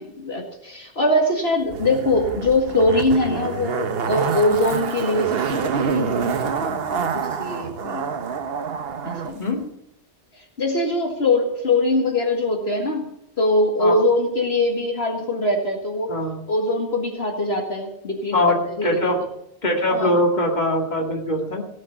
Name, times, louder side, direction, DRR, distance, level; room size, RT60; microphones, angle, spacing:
voice 1, 0.0-8.1 9.0-9.4 10.4-13.1 13.4-16.1 16.5-18.3 18.7-19.1 19.9-20.1, left 2 dB, 65° left, 1 dB, 2.2 m, -22 dB
Zipper (clothing), 1.7-9.3 9.6-9.7, right 6 dB, 65° right, 1.1 m, -27 dB
voice 2, 16.1-16.4 18.3-19.2 19.6-21.6, left 1 dB, 40° left, 1 dB, 2.4 m, -22 dB
18.0 x 6.4 x 8.4 m, 0.77 s
omnidirectional pair, 1.1 m